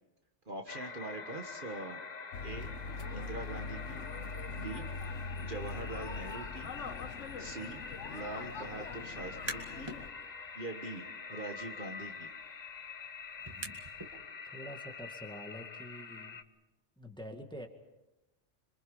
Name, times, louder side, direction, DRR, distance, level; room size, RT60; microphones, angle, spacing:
voice 1, 0.4-2.0 2.4-2.7 3.1-4.0 4.5-4.8 5.4-6.7 7.4-7.8 8.1-9.9 10.5-12.3, right 2 dB, 45° right, 4 dB, 1.6 m, -43 dB
sound 1, 0.7-16.4, left 5 dB, 40° left, 0.9 m, -46 dB
sound 2, 2.3-10.1, left 4 dB, 80° left, 1.5 m, -42 dB
sound 3, 9.2-10.0 10.4-14.2, right 1 dB, 20° right, 2.2 m, -47 dB
voice 2, 14.4-16.4 17.0-17.7, equal, 5° left, 3 dB, 2.1 m, -46 dB
27.0 x 24.5 x 5.3 m, 0.99 s
omnidirectional pair, 1.2 m